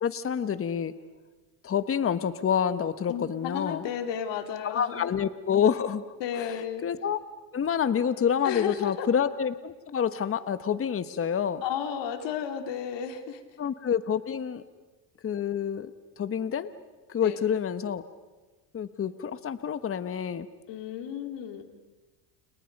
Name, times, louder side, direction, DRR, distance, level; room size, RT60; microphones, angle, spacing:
voice 1, 0.0-0.9 1.6-3.8 4.6-6.0 6.4-6.5 6.8-7.2 7.5-11.6 13.6-14.6 15.2-16.7 17.1-18.0 18.7-20.5, left 8 dB, 25° left, 13 dB, 1.3 m, -28 dB
voice 2, 3.1-5.1 6.2-6.9 8.4-9.1 11.1-11.2 11.6-13.4 17.2-17.5 20.7-21.6, left 8 dB, 60° left, 6 dB, 3.1 m, -33 dB
30.0 x 30.0 x 5.4 m, 1.2 s
supercardioid pair, 100°, 49 cm